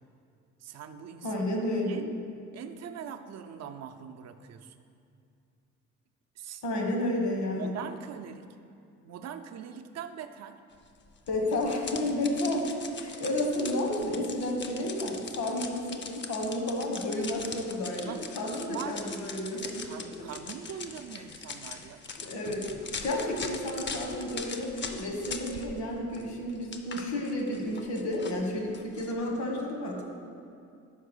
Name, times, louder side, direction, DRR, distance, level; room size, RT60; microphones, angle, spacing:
voice 1, 0.6-1.4 1.9-2.2 2.5-4.7 6.4-6.6 7.5-8.4 9.0-10.6 18.1-18.2 18.6-19.0 19.5-22.0, right 8 dB, 60° right, 7 dB, 0.5 m, -42 dB
voice 2, 1.2-2.2 6.6-7.7 11.3-12.7 12.9-20.3 22.2-22.7 23.0-30.0, left 1 dB, 70° left, 0 dB, 1.4 m, -31 dB
sound 1, 11.3-25.8 26.1-29.1, left 5 dB, 40° left, 0.6 m, -41 dB
5.8 x 4.7 x 6.2 m, 2.5 s
cardioid pair, 90°, 30 cm